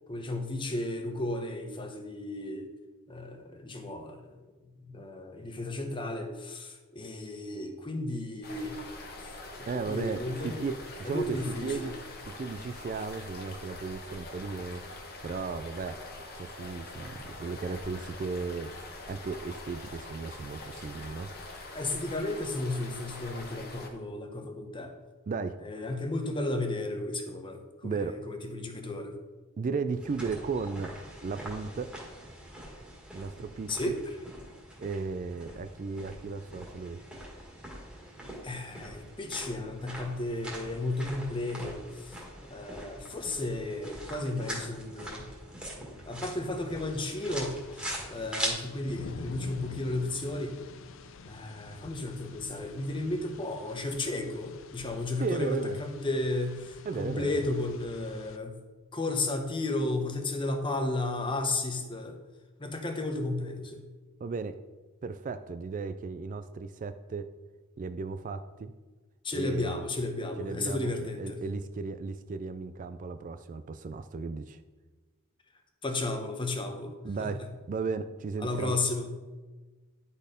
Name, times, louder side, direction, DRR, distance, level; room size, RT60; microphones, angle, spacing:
voice 1, 0.1-2.7 3.1-4.2 4.9-8.8 9.6-10.6 11.0-11.9 21.7-25.0 25.6-29.2 33.7-34.0 38.4-42.2 42.5-45.3 46.1-50.6 51.2-58.6 58.9-62.2 62.6-63.8 69.2-71.4 75.8-76.9 77.2-77.3 78.4-79.1, left 2 dB, 25° left, 5 dB, 0.9 m, -33 dB
sound 1, 8.4-23.9, left 2 dB, 45° left, 1.2 m, -44 dB
voice 2, 9.7-12.0 12.4-14.8 15.2-16.0 16.4-18.7 19.1-21.3 25.3-25.6 27.8-28.2 29.6-30.9 31.2-31.9 33.1-33.9 34.8-37.0 55.2-55.8 56.8-57.4 64.2-64.6 65.0-67.3 67.8-68.7 69.3-69.8 70.4-74.6 77.0-78.8, right 4 dB, 40° right, 10 dB, 0.3 m, -35 dB
sound 2, 30.0-48.5, right 1 dB, 5° right, 1.8 m, -42 dB
sound 3, 46.7-58.4, left 4 dB, 60° left, 0.5 m, -48 dB
10.5 x 4.3 x 5.1 m, 1.3 s
head